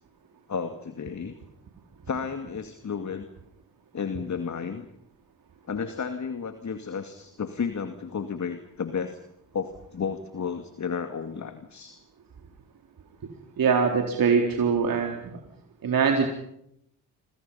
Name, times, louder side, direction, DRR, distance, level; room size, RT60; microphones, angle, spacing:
voice 1, 0.5-1.3 2.1-3.3 3.9-4.9 5.7-9.2 9.5-12.0, left 6 dB, 45° left, 8 dB, 2.3 m, -32 dB
voice 2, 13.6-15.4 15.8-16.3, right 6 dB, 55° right, 2 dB, 4.0 m, -23 dB
29.5 x 25.5 x 5.7 m, 0.74 s
supercardioid pair, 55°, 40 cm